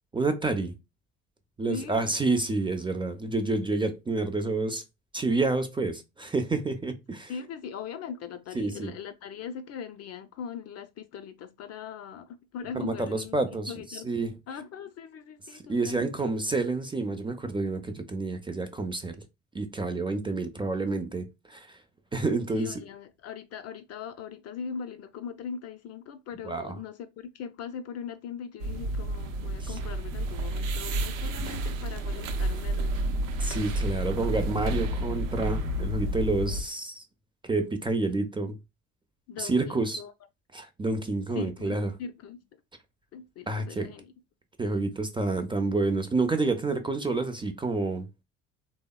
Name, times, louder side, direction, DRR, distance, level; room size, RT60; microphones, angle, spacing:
voice 1, 0.1-0.7 1.6-4.8 5.1-7.3 8.5-8.9 12.7-14.3 15.7-19.2 19.5-21.8 22.1-22.8 26.4-26.7 29.6-29.7 33.4-37.0 37.4-38.6 39.4-40.0 40.5-41.9 43.5-43.9 44.6-48.1, right 3 dB, 15° right, 0.5 m, -29 dB
voice 2, 1.7-2.2 7.3-13.4 13.7-14.1 14.5-16.3 22.5-33.1 39.3-40.1 41.3-42.6 43.1-44.1, left 7 dB, 40° left, 0.5 m, -40 dB
sound 1, 28.6-36.6, right 1 dB, 85° right, 0.6 m, -30 dB
3.3 x 2.0 x 2.2 m
hypercardioid pair, 65°, 39 cm